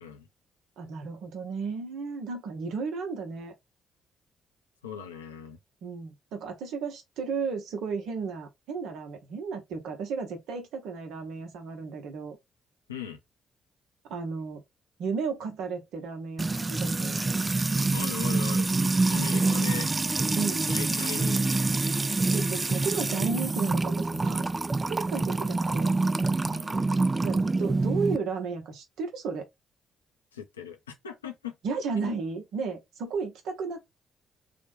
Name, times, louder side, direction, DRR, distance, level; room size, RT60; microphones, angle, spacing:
voice 1, 0.8-3.5 5.8-12.4 14.1-14.6 15.0-17.3 20.3-20.7 22.3-24.5 24.9-25.9 27.2-29.5 31.6-33.8, right 5 dB, 60° right, 0.8 m, -33 dB
voice 2, 4.8-5.6 12.9-13.2 17.9-18.8 19.1-19.9 20.7-22.3 26.5-26.9 30.3-30.8 31.0-31.6 32.0-32.2, left 8 dB, 85° left, 0.4 m, -39 dB
Music / Water tap faucet / Trickle dribble, 16.4-28.2, right 3 dB, 25° right, 0.4 m, -26 dB
3.4 x 2.2 x 3.1 m
figure-of-eight pair, 40°, 0 cm